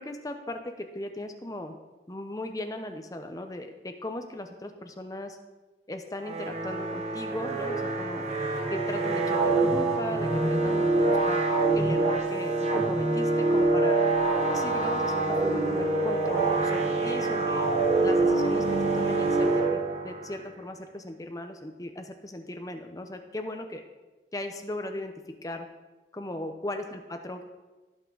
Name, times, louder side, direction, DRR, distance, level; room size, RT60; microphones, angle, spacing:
voice 1, 0.0-1.7 2.1-5.4 5.9-8.3 8.7-11.4 11.7-12.5 12.9-14.0 14.5-17.7 18.0-23.8 24.3-25.1 25.4-25.7 26.1-27.4, left 1 dB, 20° left, 6 dB, 0.8 m, -37 dB
sound 1, 6.2-20.3, right 2 dB, 40° right, 1.3 m, -25 dB
17.0 x 5.9 x 4.0 m, 1.2 s
head